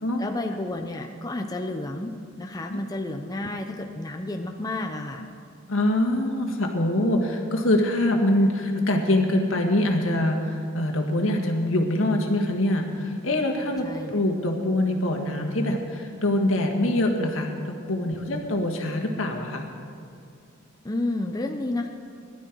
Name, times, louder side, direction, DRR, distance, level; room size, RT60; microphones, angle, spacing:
voice 1, 0.2-2.1 2.4-5.3 13.8-14.1 18.2-18.4 20.8-21.9, left 2 dB, 20° left, 3 dB, 0.7 m, -31 dB
voice 2, 5.7-19.7, left 1 dB, 80° left, 2 dB, 1.9 m, -24 dB
19.5 x 11.5 x 4.6 m, 2.4 s
head